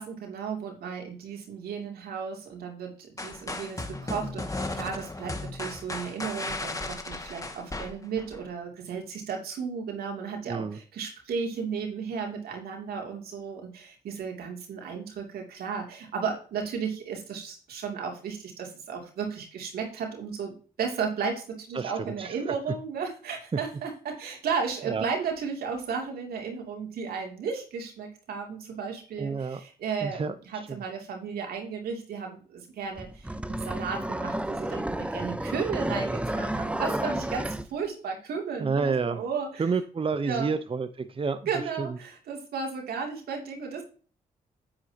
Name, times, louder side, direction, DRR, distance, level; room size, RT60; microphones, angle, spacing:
voice 1, 0.0-39.7 40.2-40.5 41.5-43.8, right 6 dB, 80° right, 2 dB, 2.8 m, -34 dB
sound 1, 3.2-8.4, left 2 dB, 20° left, 2.0 m, -35 dB
voice 2, 10.5-10.8 21.7-22.5 24.9-25.0 29.2-29.6 30.0-30.8 38.6-39.2 39.6-41.5 41.8-42.0, right 5 dB, 35° right, 11 dB, 0.8 m, -30 dB
sound 2, 33.0-37.7, right 1 dB, 10° right, 0.9 m, -31 dB
9.3 x 8.7 x 2.9 m, 0.39 s
supercardioid pair, 50°, 16 cm